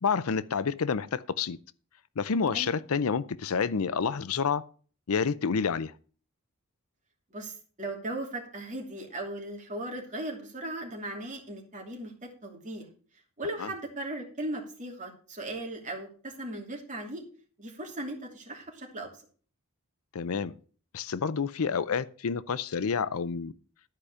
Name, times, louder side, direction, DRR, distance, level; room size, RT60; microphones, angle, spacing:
voice 1, 0.0-1.6 2.2-4.6 5.1-5.9 13.6-13.7 20.1-20.5 20.9-23.5, left 6 dB, 70° left, 0.5 m, -29 dB
voice 2, 7.3-12.9 13.4-17.2 17.6-19.1, right 1 dB, 35° right, 2.8 m, -37 dB
12.5 x 5.0 x 6.7 m
head